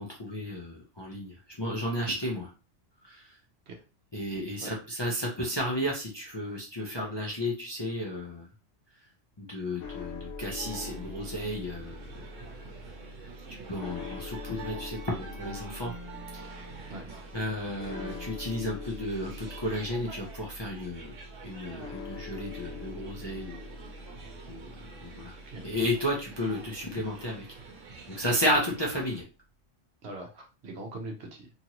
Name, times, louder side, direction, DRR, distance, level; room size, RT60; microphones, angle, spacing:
voice 1, 0.0-2.5 3.0-3.3 4.1-8.5 9.4-12.1 13.7-15.9 16.3-16.5 16.7-16.9 17.3-21.1 21.4-23.7 24.5-25.4 25.6-27.5 28.1-29.2, equal, 30° left, -2 dB, 0.5 m, -33 dB
sound 1, 9.8-28.0, left 3 dB, 80° left, 1.0 m, -44 dB
sound 2, 10.6-29.2, right 4 dB, 85° right, 1.1 m, -47 dB
voice 2, 30.0-31.5, right 2 dB, 60° right, 3 dB, 1.0 m, -41 dB
2.9 x 2.5 x 2.9 m, 0.33 s
omnidirectional pair, 1.3 m